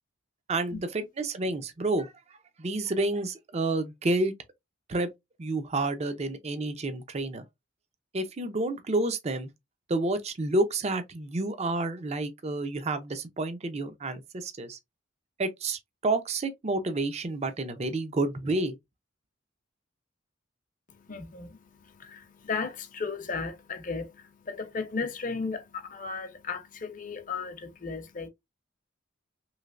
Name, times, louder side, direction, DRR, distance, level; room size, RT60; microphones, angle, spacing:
voice 1, 0.5-2.1 2.6-4.3 4.9-5.1 5.4-7.4 8.1-9.5 9.9-14.8 15.4-18.8, right 2 dB, 35° right, 0.5 m, -29 dB
voice 2, 20.9-28.3, left 4 dB, 40° left, 0.7 m, -35 dB
3.2 x 2.9 x 2.4 m
head